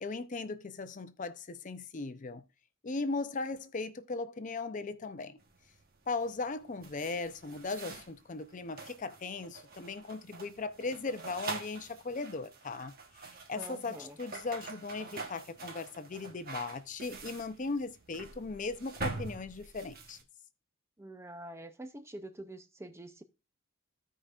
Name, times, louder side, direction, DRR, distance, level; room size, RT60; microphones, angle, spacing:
voice 1, 0.0-2.4 2.8-5.4 6.1-12.9 13.2-20.2, left 3 dB, 40° left, 0.5 m, -38 dB
sound 1, 5.4-20.2, right 3 dB, 45° right, 1.1 m, -45 dB
voice 2, 13.6-14.2 21.0-23.2, right 1 dB, 15° right, 0.5 m, -46 dB
15.0 x 5.0 x 2.4 m
head